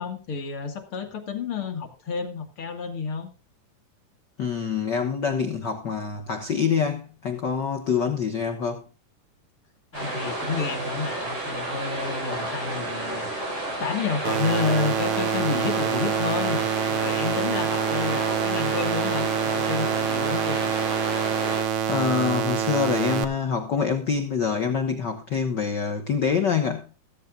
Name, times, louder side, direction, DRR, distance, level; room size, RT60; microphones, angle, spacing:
voice 1, 0.0-3.3 9.9-13.5 13.8-20.7, left 5 dB, 50° left, 2.3 m, -30 dB
voice 2, 4.4-8.8 21.9-26.9, left 6 dB, 70° left, 1.0 m, -25 dB
sound 1, 9.9-21.6, right 1 dB, 50° right, 6.4 m, -31 dB
sound 2, 14.2-23.2, right 8 dB, 85° right, 1.0 m, -26 dB
15.0 x 14.0 x 2.4 m
omnidirectional pair, 3.7 m